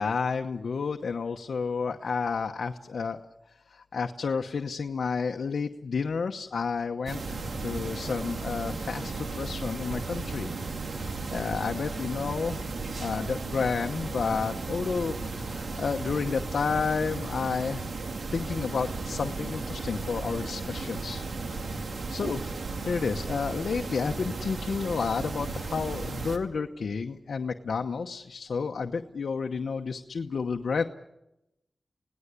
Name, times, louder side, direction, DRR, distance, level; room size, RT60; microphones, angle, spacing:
voice 1, 0.0-3.2 3.7-12.6 13.0-17.8 18.3-21.2 22.1-22.4 22.9-30.8, left 5 dB, 85° left, 4 dB, 1.0 m, -31 dB
sound 1, 7.1-26.4, right 3 dB, 80° right, 2.4 m, -35 dB
28.5 x 18.5 x 8.3 m, 0.91 s
wide cardioid pair, 70°, 0 cm